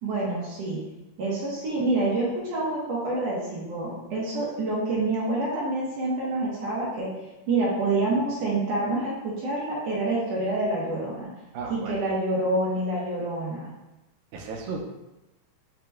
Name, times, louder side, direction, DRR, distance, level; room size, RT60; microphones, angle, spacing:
voice 1, 0.0-0.8 1.2-7.1 7.5-11.3 11.7-13.7, right 2 dB, 65° right, -6 dB, 1.8 m, -27 dB
voice 2, 11.5-12.0 14.3-14.9, right 4 dB, 85° right, 1 dB, 2.2 m, -34 dB
8.4 x 2.9 x 2.2 m, 0.98 s
omnidirectional pair, 3.8 m